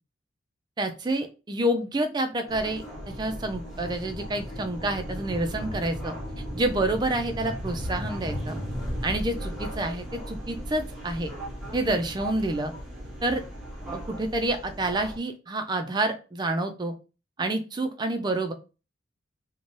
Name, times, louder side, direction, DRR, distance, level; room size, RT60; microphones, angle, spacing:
voice 1, 0.8-6.1 6.5-8.6 9.0-11.3 11.7-12.7 13.2-13.4 13.9-16.9 17.4-18.5, right 1 dB, 20° right, 6 dB, 0.3 m, -28 dB
sound 1, 2.5-15.2, equal, ahead, 0.7 m, -36 dB
2.6 x 2.2 x 3.0 m, 0.31 s
head